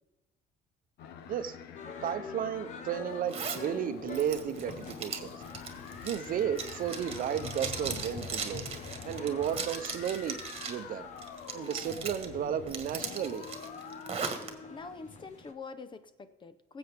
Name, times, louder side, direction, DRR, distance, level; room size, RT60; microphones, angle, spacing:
sound 1, 1.0-14.5, left 8 dB, 80° left, 0.9 m, -47 dB
sound 2, 1.7-15.5, left 4 dB, 45° left, 1.2 m, -46 dB
voice 1, 2.0-5.4 6.0-8.7 9.0-10.4 10.7-11.1 11.5-13.5, right 9 dB, 55° right, 10 dB, 0.8 m, -33 dB
Zipper (clothing), 3.3-3.7 4.1-10.8 11.2-12.3 12.7-14.5, right 5 dB, 35° right, 1.5 m, -39 dB
voice 2, 14.7-16.8, left 4 dB, 30° left, 12 dB, 0.8 m, -45 dB
18.5 x 7.9 x 3.5 m, 1.1 s
cardioid pair, 110°, 17 cm